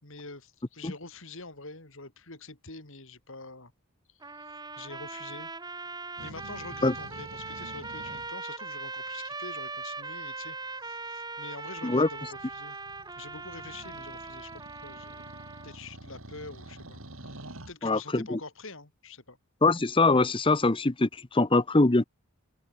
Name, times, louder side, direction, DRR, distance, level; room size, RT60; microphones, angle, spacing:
voice 1, 0.0-3.7 4.1-5.5 6.2-12.8 13.2-15.2 15.6-19.4, left 3 dB, 60° left, 4.0 m, -46 dB
sound 1, 4.2-15.8, right 3 dB, 20° right, 2.8 m, -40 dB
sound 2, 6.2-8.3 11.7-17.7, right 1 dB, 65° right, 4.6 m, -48 dB
voice 2, 17.8-18.4 19.6-22.0, left 2 dB, 25° left, 0.8 m, -23 dB
open air
head